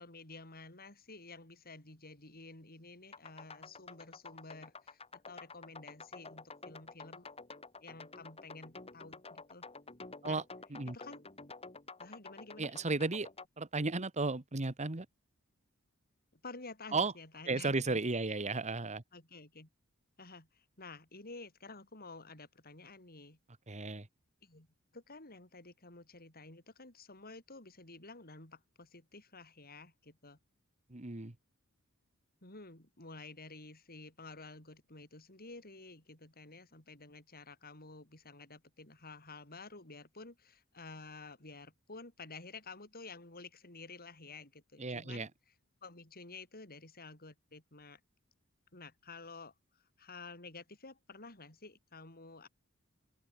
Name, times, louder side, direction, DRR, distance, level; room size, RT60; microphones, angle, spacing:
voice 1, 0.0-7.3 7.8-9.6 10.2-10.4 10.8-11.2 12.0-12.7 16.3-18.0 19.1-19.7 20.2-23.4 24.4-24.7 24.9-30.4 32.4-45.3 45.8-48.0 48.7-52.5, left 3 dB, 45° left, 7.2 m, -51 dB
sound 1, 3.1-13.5, left 4 dB, 30° left, 4.3 m, -50 dB
voice 2, 12.6-13.3 13.6-15.1 16.9-17.1 17.5-19.0 23.7-24.1 30.9-31.3 44.8-45.3, right 3 dB, 35° right, 1.4 m, -34 dB
open air
head